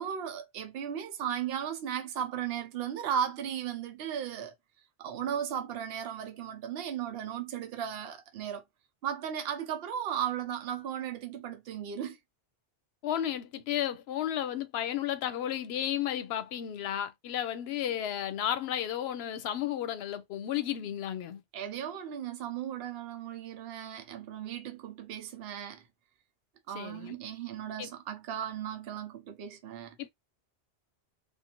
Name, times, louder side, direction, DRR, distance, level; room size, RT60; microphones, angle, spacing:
voice 1, 0.0-4.5 5.0-8.6 9.0-12.2 21.5-25.8 26.7-29.9, right 9 dB, 70° right, 0.8 m, -36 dB
voice 2, 13.0-21.4 26.7-27.2 27.8-27.9 30.0-30.1, left 11 dB, 75° left, 0.8 m, -33 dB
2.6 x 2.4 x 2.9 m
omnidirectional pair, 1.1 m